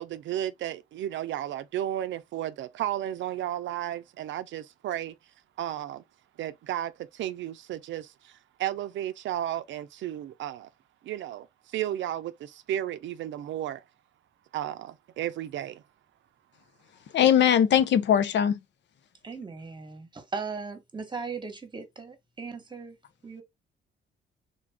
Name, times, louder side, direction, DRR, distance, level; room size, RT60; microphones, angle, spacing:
voice 1, 0.0-5.1 5.6-6.0 6.4-8.3 8.6-10.7 11.0-11.5 11.7-13.8 14.5-15.8, right 12 dB, 70° right, 0.5 m, -33 dB
voice 2, 17.1-18.6, left 9 dB, 65° left, 0.7 m, -20 dB
voice 3, 19.2-23.0 23.2-23.4, right 4 dB, 20° right, 1.2 m, -38 dB
3.8 x 2.4 x 3.5 m
cardioid pair, 90°, 20 cm